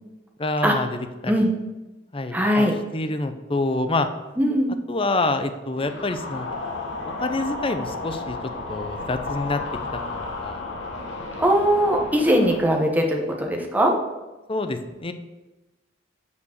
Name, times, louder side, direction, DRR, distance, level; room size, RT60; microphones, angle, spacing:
voice 1, 0.4-1.3 2.1-4.1 4.9-6.6 7.2-8.4 8.7-9.6 10.1-10.7 14.5-15.1, left 2 dB, 30° left, 9 dB, 0.6 m, -27 dB
voice 2, 2.3-2.8 4.4-4.7 11.4-13.9, equal, 10° right, 1 dB, 1.2 m, -20 dB
sound 1, 5.8-12.6, left 3 dB, 65° left, 1.7 m, -33 dB
8.3 x 5.1 x 6.5 m, 1.1 s
head